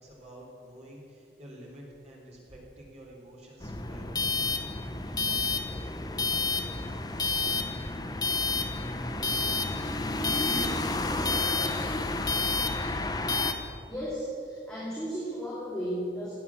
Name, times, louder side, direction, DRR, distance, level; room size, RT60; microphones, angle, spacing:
voice 1, 0.0-4.4, equal, 35° right, -3 dB, 3.7 m, -49 dB
sound 1, 3.6-13.5, left 3 dB, 20° left, 0.9 m, -29 dB
voice 2, 11.7-12.0 13.9-16.3, equal, 5° left, -9 dB, 3.0 m, -35 dB
17.0 x 9.3 x 7.3 m, 2.5 s
head